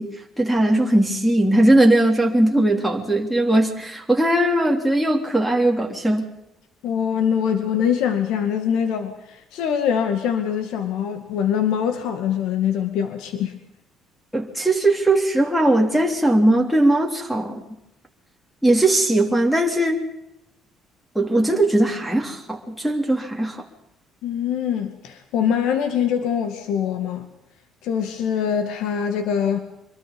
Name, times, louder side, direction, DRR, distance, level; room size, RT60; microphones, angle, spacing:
voice 1, 0.0-6.3 14.3-17.6 18.6-20.0 21.1-23.6, right 1 dB, ahead, 3.2 m, -19 dB
voice 2, 6.8-13.5 24.2-27.3 27.8-29.6, left 8 dB, 85° left, 2.3 m, -23 dB
25.5 x 22.0 x 5.4 m
cardioid pair, 150°, 0 cm